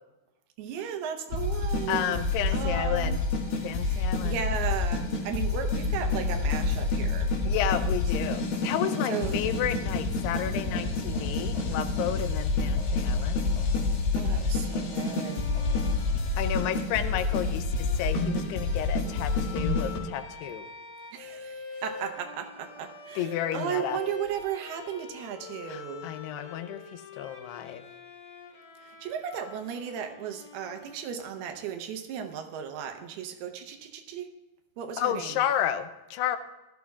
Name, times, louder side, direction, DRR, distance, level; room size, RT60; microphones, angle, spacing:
voice 1, 0.6-2.2 2.5-3.2 3.8-7.4 9.1-9.4 14.1-15.5 21.1-26.1 28.8-34.3 34.8-35.4, right 8 dB, 80° right, 6 dB, 2.8 m, -35 dB
sound 1, 1.3-20.0, left 3 dB, 65° left, 3.3 m, -28 dB
voice 2, 1.9-3.2 3.6-4.4 7.5-13.4 16.4-20.7 23.2-24.0 25.7-27.8 35.0-36.4, left 10 dB, 90° left, 10 dB, 2.8 m, -32 dB
Bowed string instrument, 14.9-31.4, left 5 dB, 45° left, 2.7 m, -44 dB
16.5 x 12.5 x 2.4 m, 1.1 s
omnidirectional pair, 4.7 m